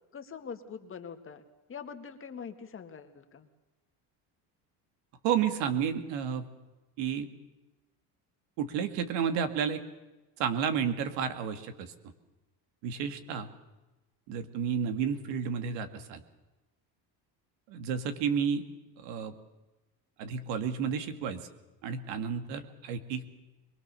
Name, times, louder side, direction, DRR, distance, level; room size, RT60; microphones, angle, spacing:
voice 1, 0.1-1.4 1.7-3.5, left 6 dB, 30° left, 6 dB, 1.9 m, -43 dB
voice 2, 5.2-6.5 7.0-7.3 8.6-9.8 10.4-11.9 12.8-13.5 14.3-16.2 17.7-18.6 19.0-19.3 20.2-21.5 21.8-23.2, right 7 dB, 80° right, 9 dB, 2.2 m, -31 dB
22.5 x 22.0 x 6.9 m, 1.1 s
cardioid pair, 125°, 43 cm